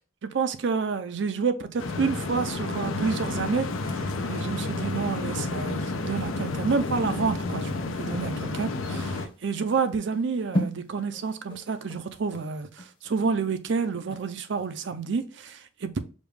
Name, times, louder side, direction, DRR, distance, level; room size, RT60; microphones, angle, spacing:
voice 1, 0.2-7.7 8.0-16.0, right 5 dB, 60° right, 0.5 m, -29 dB
sound 1, 1.8-9.3, left 3 dB, 75° left, 0.5 m, -30 dB
sound 2, 6.2-14.7 15.1-15.2, right 1 dB, 25° left, 0.8 m, -37 dB
5.1 x 2.3 x 3.2 m
head